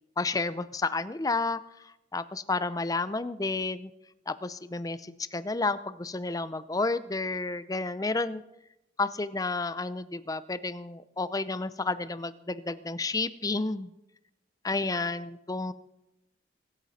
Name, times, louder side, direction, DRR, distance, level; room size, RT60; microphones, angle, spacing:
voice 1, 0.2-1.6 2.1-3.9 4.3-8.4 9.0-13.9 14.6-15.7, left 3 dB, 20° left, 14 dB, 0.5 m, -31 dB
23.5 x 9.1 x 4.2 m, 0.89 s
head